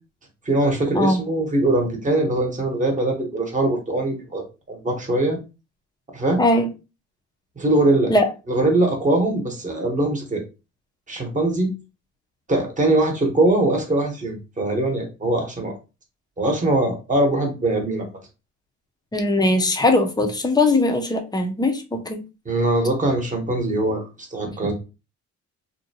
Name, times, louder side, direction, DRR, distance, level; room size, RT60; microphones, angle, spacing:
voice 1, 0.5-5.4 6.1-6.4 7.6-8.1 8.5-10.4 11.1-11.7 12.5-15.7 16.4-18.1 22.4-24.7, right 2 dB, 25° right, 1 dB, 1.0 m, -22 dB
voice 2, 6.4-6.7 8.1-8.2 19.1-22.2, left 2 dB, 15° left, 5 dB, 0.5 m, -20 dB
2.7 x 2.1 x 2.7 m, 0.30 s
cardioid pair, 90°, 30 cm